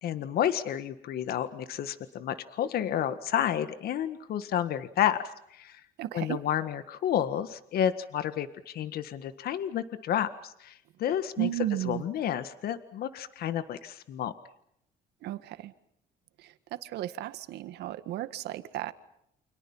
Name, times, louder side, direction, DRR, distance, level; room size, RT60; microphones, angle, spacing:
voice 1, 0.0-5.8 6.1-11.5 11.8-14.3, left 10 dB, 65° left, 11 dB, 1.7 m, -31 dB
voice 2, 6.0-6.4 11.4-12.0 15.2-15.7 16.8-18.9, right 13 dB, 80° right, 12 dB, 1.9 m, -33 dB
29.5 x 27.0 x 5.7 m, 0.75 s
cardioid pair, 110°, 17 cm